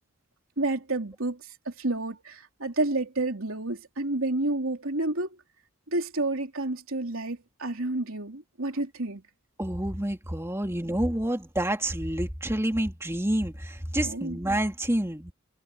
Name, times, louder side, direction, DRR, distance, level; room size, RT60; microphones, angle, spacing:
voice 1, 0.6-5.4 5.9-9.2 14.0-14.4, right 2 dB, 70° right, 3.4 m, -30 dB
voice 2, 9.6-15.3, right 1 dB, 10° right, 2.7 m, -28 dB
head